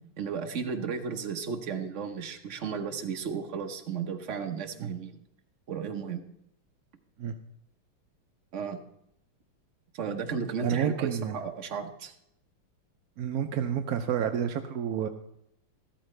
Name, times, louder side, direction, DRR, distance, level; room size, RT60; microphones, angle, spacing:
voice 1, 0.2-5.2 5.7-6.2 8.5-8.8 9.9-12.1, right 6 dB, 50° right, 5 dB, 1.0 m, -34 dB
voice 2, 10.6-11.4 13.2-15.1, right 8 dB, 80° right, 6 dB, 0.8 m, -29 dB
13.5 x 13.0 x 3.2 m, 0.79 s
omnidirectional pair, 2.3 m